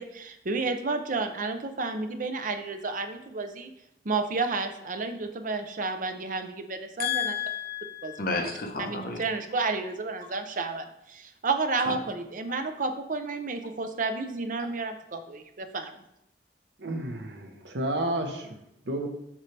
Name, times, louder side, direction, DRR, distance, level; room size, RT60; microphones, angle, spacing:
voice 1, 0.0-3.7 4.0-7.3 8.0-8.4 8.8-15.9, right 3 dB, 50° right, 7 dB, 0.6 m, -31 dB
voice 2, 7.0-9.2, left 6 dB, 55° left, 3 dB, 1.0 m, -31 dB
voice 3, 16.8-18.6 18.8-19.1, right 1 dB, 80° right, 4 dB, 1.0 m, -31 dB
7.4 x 5.5 x 3.3 m, 0.81 s
head